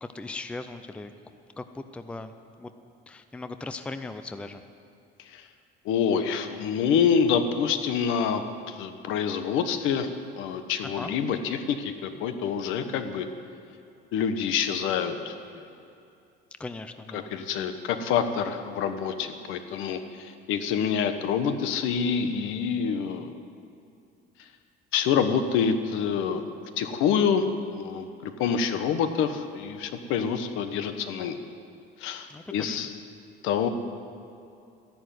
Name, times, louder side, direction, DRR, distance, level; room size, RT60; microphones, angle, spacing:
voice 1, 0.0-1.1 1.6-2.3 2.6-2.7 3.1-4.6 10.8-11.1 16.6-17.3 32.3-32.8, left 3 dB, 5° left, 9 dB, 0.4 m, -38 dB
voice 2, 5.8-10.1 10.4-13.3 14.1-15.3 17.1-23.3 24.9-26.4 26.8-27.4 27.7-31.4 32.0-32.9 33.4-33.7, left 7 dB, 80° left, 8 dB, 1.3 m, -27 dB
14.0 x 11.0 x 9.3 m, 2.6 s
cardioid pair, 180°, 20 cm